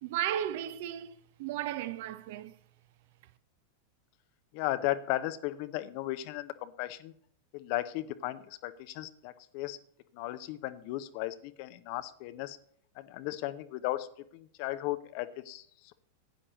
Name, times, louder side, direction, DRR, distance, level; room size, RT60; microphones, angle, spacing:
voice 1, 0.0-2.5, right 11 dB, 50° right, 0.7 m, -35 dB
voice 2, 4.5-7.1 7.5-9.8 10.1-12.6 13.0-14.1 14.3-15.6, left 15 dB, 45° left, 0.7 m, -35 dB
15.5 x 9.8 x 3.1 m
figure-of-eight pair, 90°, 0 cm